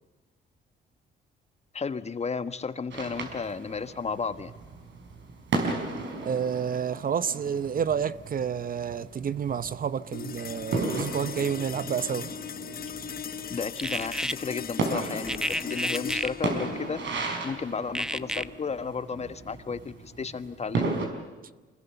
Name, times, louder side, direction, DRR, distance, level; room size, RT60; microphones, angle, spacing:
voice 1, 1.7-4.5 13.5-21.0, left 5 dB, 35° left, 1.3 m, -33 dB
sound 1, 2.9-21.1, right 3 dB, 65° right, 5.2 m, -35 dB
voice 2, 6.2-12.3, right 7 dB, 45° right, 0.8 m, -29 dB
sound 2, 10.1-20.7, left 8 dB, 50° left, 1.0 m, -40 dB
sound 3, 13.8-14.3 15.3-16.3 17.9-18.4, equal, 5° right, 0.8 m, -30 dB
25.0 x 21.0 x 7.1 m
cardioid pair, 90°, 20 cm